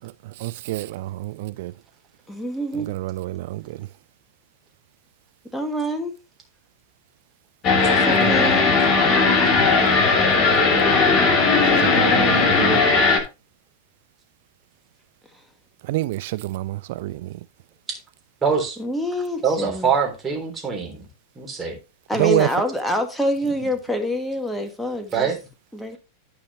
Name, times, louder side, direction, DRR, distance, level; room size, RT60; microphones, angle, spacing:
voice 1, 0.4-1.7 2.9-3.6 8.2-8.3 11.8-12.8 15.9-17.3 22.2-22.5, right 17 dB, 50° right, 0.3 m, -26 dB
voice 2, 2.3-2.9 5.5-6.1 7.9-8.7 18.8-19.9 22.1-25.3 25.7-26.0, equal, 5° left, 1.8 m, -26 dB
sound 1, 7.6-13.2, left 4 dB, 30° left, 2.6 m, -17 dB
voice 3, 18.4-18.8 19.4-21.0 21.3-21.8 23.5-23.7 25.1-25.4, right 6 dB, 20° right, 3.3 m, -24 dB
14.0 x 5.1 x 2.9 m
figure-of-eight pair, 90°, 0 cm